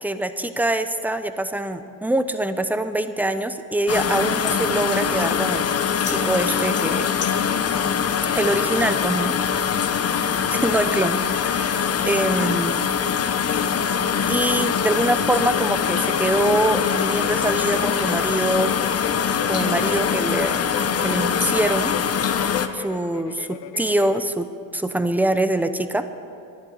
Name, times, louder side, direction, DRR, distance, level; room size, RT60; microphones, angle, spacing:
voice 1, 0.0-5.6 6.1-7.1 8.4-9.3 10.5-12.8 14.3-18.7 19.5-20.6 21.0-21.9 22.7-26.1, right 1 dB, 5° right, 10 dB, 0.8 m, -24 dB
sound 1, 3.9-22.7, left 7 dB, 35° left, 0.9 m, -23 dB
sound 2, 15.7-24.3, left 11 dB, 70° left, 0.7 m, -36 dB
12.5 x 11.0 x 7.9 m, 2.6 s
supercardioid pair, 90°, 44 cm